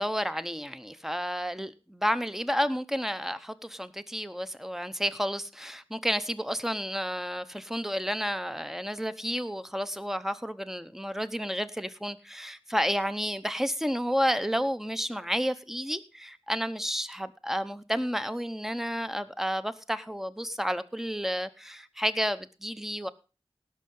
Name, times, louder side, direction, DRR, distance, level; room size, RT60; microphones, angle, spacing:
voice 1, 0.0-23.1, equal, 5° right, 0.9 m, -31 dB
17.5 x 6.5 x 5.4 m
wide cardioid pair, 60°, 10 cm